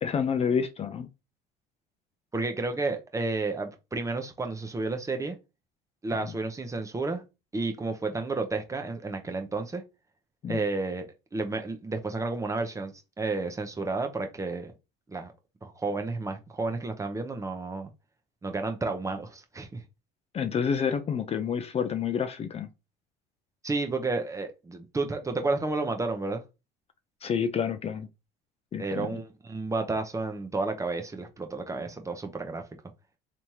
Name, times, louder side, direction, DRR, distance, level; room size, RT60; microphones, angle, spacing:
voice 1, 0.0-1.1 6.2-6.3 10.4-10.7 20.3-22.7 27.2-28.1 28.7-29.2, left 7 dB, 30° left, 0.5 m, -29 dB
voice 2, 2.3-5.4 6.0-7.2 7.5-9.8 10.5-14.7 15.1-15.3 15.6-17.9 18.4-19.8 23.6-26.4 28.8-32.6, right 3 dB, 15° right, 0.7 m, -31 dB
3.4 x 3.0 x 2.8 m
supercardioid pair, 90°, 20 cm